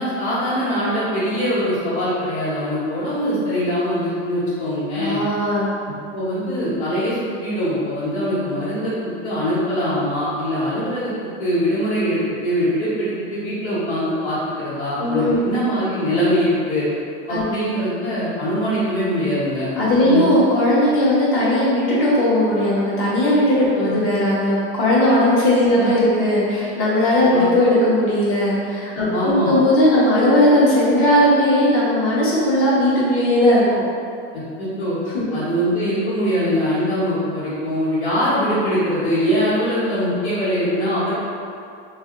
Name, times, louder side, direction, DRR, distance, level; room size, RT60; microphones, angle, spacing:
voice 1, 0.0-5.2 6.1-11.1 11.4-16.8 17.3-19.7 20.0-20.2 23.7-23.9 25.7-25.9 27.3-27.5 29.1-29.6 34.6-35.0 35.3-41.1, equal, 75° left, -13 dB, 1.4 m, -22 dB
voice 2, 4.9-5.7 15.0-15.4 17.3-17.4 19.8-33.6 35.1-35.2, left 1 dB, 40° left, -8 dB, 1.0 m, -17 dB
2.6 x 2.2 x 3.6 m, 2.4 s
supercardioid pair, 155°, 33 cm